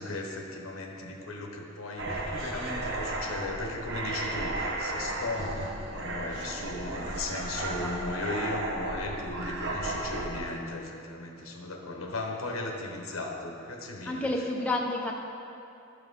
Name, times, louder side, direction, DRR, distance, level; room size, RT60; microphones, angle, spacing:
voice 1, 0.0-14.3, left 2 dB, 80° left, 2 dB, 1.0 m, -37 dB
sound 1, 2.0-10.4, right 2 dB, 60° right, 1.1 m, -34 dB
voice 2, 7.6-8.2 14.0-15.1, left 2 dB, 5° left, -1 dB, 0.6 m, -31 dB
11.5 x 6.1 x 3.7 m, 2.7 s
head